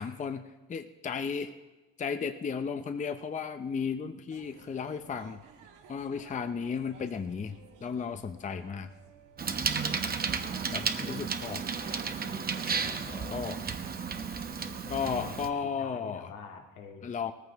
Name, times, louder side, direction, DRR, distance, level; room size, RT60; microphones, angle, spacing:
voice 1, 0.0-1.5 2.0-5.4 5.9-8.9 10.7-11.6 13.3-13.6 14.9-16.3 17.0-17.3, left 6 dB, 25° left, 8 dB, 0.6 m, -34 dB
sound 1, 4.3-13.1, right 7 dB, 90° right, 1.5 m, -55 dB
Bicycle, 9.4-15.5, right 5 dB, 30° right, 0.9 m, -33 dB
voice 2, 10.7-11.3 12.7-13.5 14.6-17.1, left 6 dB, 80° left, 1 dB, 2.1 m, -47 dB
18.0 x 14.5 x 3.5 m, 1.2 s
cardioid pair, 110°, 31 cm